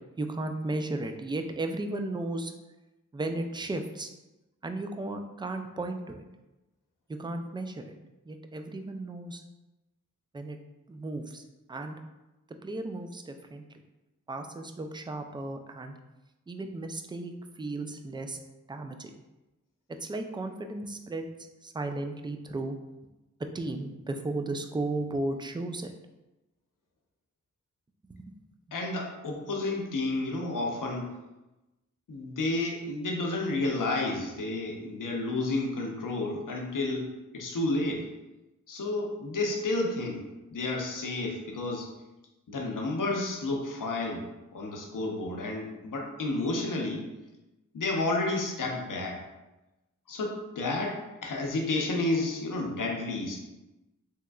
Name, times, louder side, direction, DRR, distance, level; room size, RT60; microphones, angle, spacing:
voice 1, 0.2-2.5 3.1-4.1 4.6-6.2 7.1-8.0 8.3-9.4 10.3-10.6 10.9-11.4 11.7-12.0 12.6-13.6 14.3-16.0 16.5-18.4 18.7-19.1 20.0-21.3 21.6-22.8 23.5-25.9 28.1-28.3, right 2 dB, 15° right, 6 dB, 0.3 m, -35 dB
voice 2, 28.7-31.1 32.1-37.1 37.3-38.0 38.7-40.2 40.5-41.9 42.5-44.3 44.5-47.1 47.7-49.2 50.1-53.4, left 2 dB, 80° left, 0 dB, 0.6 m, -31 dB
3.4 x 3.0 x 2.3 m, 1.0 s
cardioid pair, 40°, 32 cm